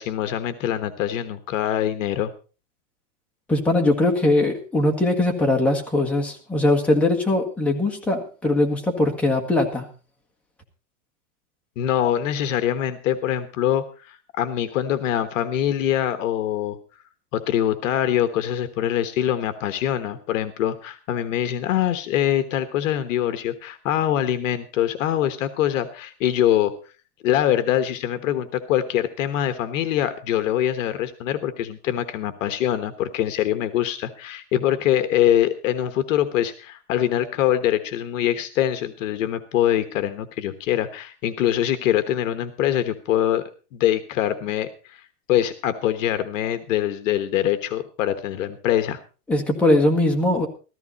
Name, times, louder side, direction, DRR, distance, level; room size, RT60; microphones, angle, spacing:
voice 1, 0.0-2.3 11.8-16.8 17.3-26.7 27.2-43.4 43.7-45.0 45.3-49.0, left 11 dB, 60° left, 10 dB, 1.3 m, -23 dB
voice 2, 3.5-9.8 49.3-50.5, left 2 dB, 5° left, 0 dB, 1.5 m, -21 dB
14.5 x 14.0 x 4.1 m, 0.35 s
supercardioid pair, 160°, 45 cm